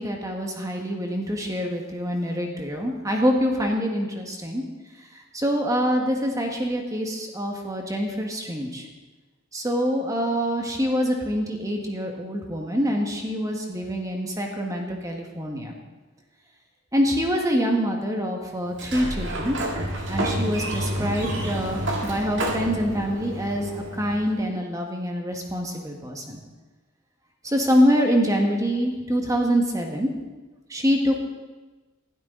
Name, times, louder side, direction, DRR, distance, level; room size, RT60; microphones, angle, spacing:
voice 1, 0.0-4.6 5.3-8.8 9.5-15.7 16.9-19.6 20.1-26.4 27.4-30.1 30.7-31.2, equal, 15° right, 2 dB, 1.7 m, -25 dB
Sliding door, 18.7-24.4, right 1 dB, 60° right, 2.1 m, -29 dB
19.5 x 12.5 x 4.0 m, 1.2 s
head